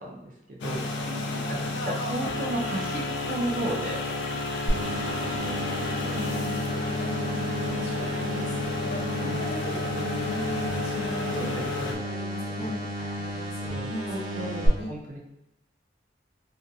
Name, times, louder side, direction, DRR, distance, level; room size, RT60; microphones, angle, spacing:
voice 1, 0.0-0.9 1.5-4.0 9.2-10.3 11.3-12.0 12.6-12.7 13.7-15.2, right 1 dB, 45° right, -2 dB, 0.4 m, -34 dB
sound 1, 0.6-11.9, left 2 dB, 70° left, 0.3 m, -31 dB
voice 2, 1.0-1.5 5.0-9.8 10.2-14.9, left 1 dB, 35° left, -5 dB, 0.7 m, -39 dB
sound 2, 4.7-14.7, equal, 65° right, 1.0 m, -33 dB
2.6 x 2.4 x 2.3 m, 0.88 s
head